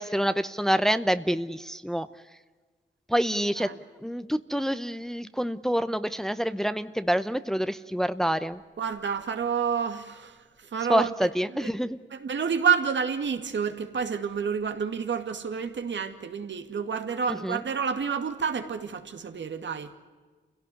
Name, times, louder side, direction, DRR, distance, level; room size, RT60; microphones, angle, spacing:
voice 1, 0.0-2.1 3.1-3.7 4.0-8.6 10.9-12.0 17.3-17.6, equal, ahead, 0.8 m, -27 dB
voice 2, 8.8-11.1 12.1-19.9, right 6 dB, 75° right, 2.2 m, -29 dB
28.5 x 17.0 x 9.7 m
wide cardioid pair, 95°, 19 cm